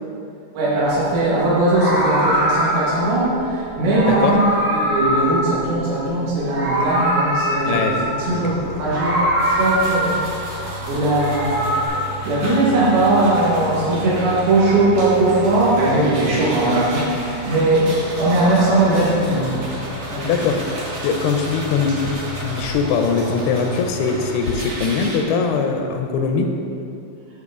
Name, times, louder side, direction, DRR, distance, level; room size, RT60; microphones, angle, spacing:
voice 1, 0.5-4.4 4.7-9.1 9.4-10.1 10.5-11.7 12.2-19.8 20.1-20.4, right 2 dB, 80° right, -7 dB, 3.5 m, -19 dB
Meow, 0.8-1.0 1.6-3.1 3.8-6.1 6.3-8.3 8.8-10.4 10.9-11.9, equal, 40° right, 2.0 m, -22 dB
voice 2, 7.6-8.0 8.3-8.4 20.2-20.6 21.0-26.5, left 5 dB, 90° left, 4 dB, 2.5 m, -21 dB
sound 1, 8.5-24.6, equal, 65° left, 1.5 m, -34 dB
sound 2, 9.4-25.2, right 1 dB, 60° right, 3.6 m, -34 dB
12.0 x 4.8 x 3.6 m, 2.6 s
omnidirectional pair, 4.4 m